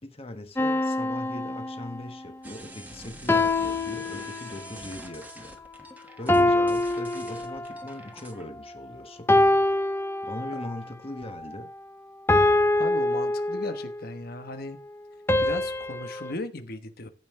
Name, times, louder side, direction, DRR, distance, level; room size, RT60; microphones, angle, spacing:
voice 1, 0.0-5.5 5.8-9.3 10.2-11.7, left 1 dB, 35° left, 1.4 m, -40 dB
sound 1, 0.6-2.2 3.3-4.8 6.3-8.0 9.3-10.8 12.3-14.0 15.3-16.3, left 2 dB, 15° left, 0.6 m, -25 dB
sound 2, 2.4-8.4, right 1 dB, 10° right, 1.3 m, -46 dB
voice 2, 12.7-14.8 15.4-17.1, left 2 dB, 55° left, 1.2 m, -37 dB
15.0 x 5.6 x 3.7 m
head